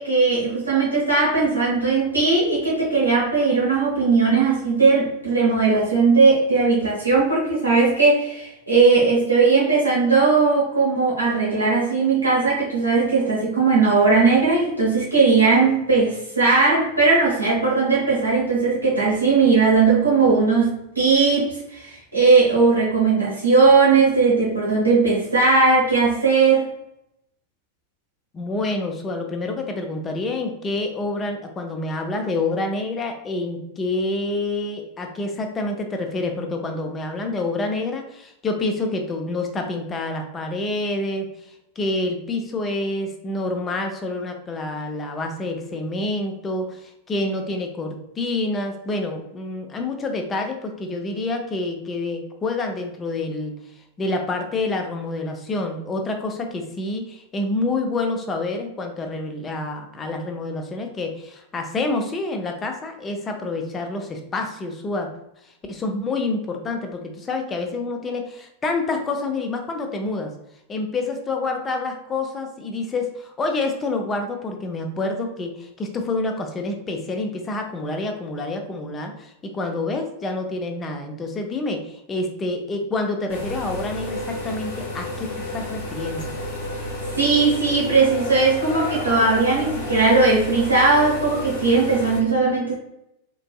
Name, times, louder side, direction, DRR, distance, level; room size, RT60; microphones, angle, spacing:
voice 1, 0.0-26.7 87.2-92.7, right 4 dB, 85° right, -6 dB, 1.0 m, -18 dB
voice 2, 28.3-53.5 54.0-65.1 65.7-70.3 70.7-84.2 84.4-85.3 85.5-86.3, left 2 dB, 20° left, 3 dB, 0.6 m, -27 dB
sound 1, 83.3-92.2, left 1 dB, 55° left, 0.7 m, -31 dB
3.8 x 2.6 x 2.3 m, 0.83 s
figure-of-eight pair, 90°, 0 cm